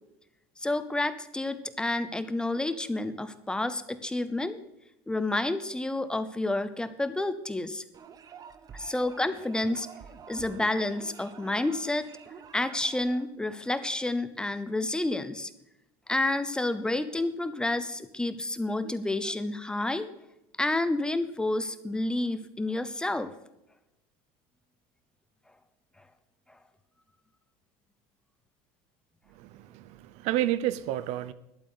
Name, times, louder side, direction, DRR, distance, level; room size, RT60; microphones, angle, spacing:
voice 1, 0.6-4.6 5.1-7.8 8.7-9.9 10.3-12.1 12.5-15.5 16.1-20.1 20.6-23.3, left 2 dB, 5° left, 0.7 m, -29 dB
sound 1, 7.9-13.3, right 7 dB, 30° right, 0.9 m, -49 dB
voice 2, 29.4-31.3, right 13 dB, 60° right, 0.7 m, -30 dB
12.0 x 8.3 x 6.6 m
cardioid pair, 150°, 13 cm